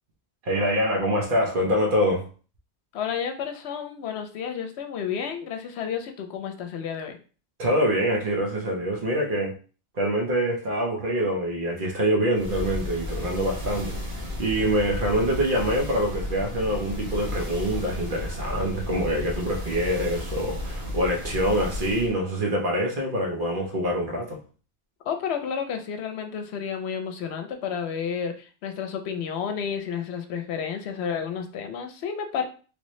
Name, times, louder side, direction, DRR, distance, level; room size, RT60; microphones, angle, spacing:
voice 1, 0.4-2.2 7.6-9.5 9.9-24.4, equal, 55° right, -1 dB, 1.0 m, -25 dB
voice 2, 2.9-7.2 25.0-32.4, left 7 dB, 75° left, 6 dB, 0.8 m, -31 dB
sound 1, 12.3-22.1, left 1 dB, 70° right, 1.5 m, -33 dB
3.3 x 2.7 x 3.1 m, 0.38 s
omnidirectional pair, 1.1 m